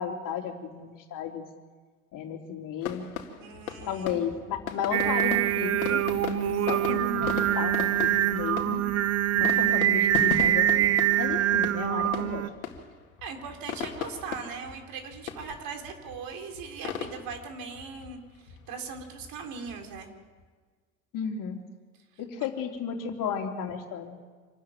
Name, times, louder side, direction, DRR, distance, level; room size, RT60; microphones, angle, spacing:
voice 1, 0.0-1.4 2.1-3.0 3.9-8.9 9.3-12.4 21.1-21.6 22.2-24.2, left 7 dB, 50° left, 3 dB, 3.3 m, -34 dB
sound 1, 2.8-20.4, left 7 dB, 85° left, 2.2 m, -39 dB
voice 2, 3.4-4.3 9.4-10.0 13.2-20.1, right 5 dB, 55° right, 4 dB, 4.1 m, -40 dB
Singing, 4.9-12.5, right 12 dB, 35° right, 0.9 m, -24 dB
26.0 x 13.0 x 9.2 m, 1.5 s
hypercardioid pair, 80°, 41 cm